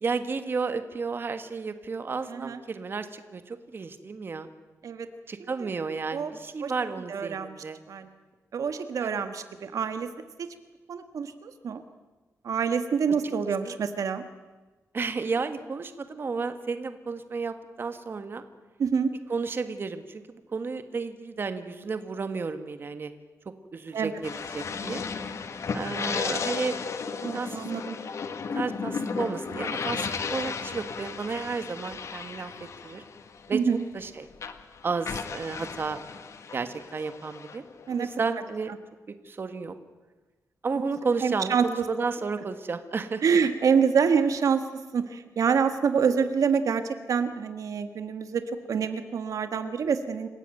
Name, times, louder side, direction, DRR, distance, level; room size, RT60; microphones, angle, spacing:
voice 1, 0.0-4.5 5.3-7.8 9.0-9.2 13.6-13.8 14.9-18.4 19.3-20.2 20.5-23.1 23.7-25.0 25.7-26.8 27.3-27.7 28.5-32.5 32.8-33.0 33.5-33.6 33.9-34.3 34.8-36.0 36.5-37.6 38.0-38.7 39.1-39.7 40.6-43.2, right 4 dB, 40° right, 9 dB, 1.6 m, -32 dB
voice 2, 2.3-2.6 4.8-5.1 5.4-5.7 6.1-6.3 6.6-6.7 7.1-7.5 7.9-8.1 8.5-10.1 10.4-10.5 10.9-11.8 12.4-14.2 18.8-19.1 23.9-24.1 27.2-28.0 33.5-33.8 37.9-38.1 41.2-41.6 43.2-44.6 44.9-50.3, right 6 dB, 70° right, 9 dB, 1.5 m, -26 dB
sound 1, 24.2-34.1 34.4-38.2, left 5 dB, 55° left, 1.7 m, -34 dB
28.0 x 16.5 x 9.1 m, 1.2 s
wide cardioid pair, 160°, 6 cm